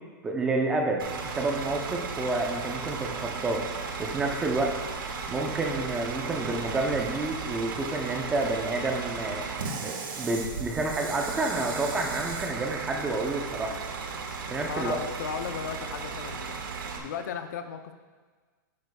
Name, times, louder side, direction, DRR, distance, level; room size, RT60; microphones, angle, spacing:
voice 1, 0.2-3.6 4.0-4.8 5.3-9.4 9.8-13.8 14.5-15.0, right 2 dB, 10° right, 1 dB, 0.6 m, -29 dB
Bus / Idling, 1.0-17.0, right 5 dB, 90° right, 1.5 m, -35 dB
voice 2, 14.7-16.5 17.0-17.9, left 7 dB, 55° left, 8 dB, 0.6 m, -35 dB
11.0 x 9.6 x 2.3 m, 1.4 s
supercardioid pair, 170°, 11 cm